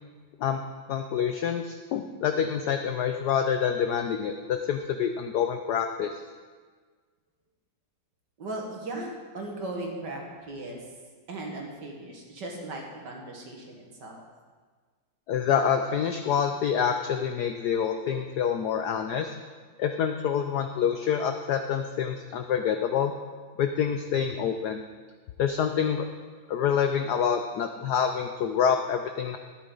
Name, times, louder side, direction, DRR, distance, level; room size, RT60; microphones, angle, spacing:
voice 1, 0.9-6.1 15.3-19.3 19.8-23.1 23.6-24.8 25.4-26.1 26.5-29.4, left 8 dB, 85° left, 6 dB, 0.9 m, -27 dB
voice 2, 8.4-10.8 11.3-14.2, right 2 dB, 55° right, 0 dB, 2.1 m, -37 dB
13.0 x 9.7 x 3.8 m, 1.5 s
omnidirectional pair, 2.4 m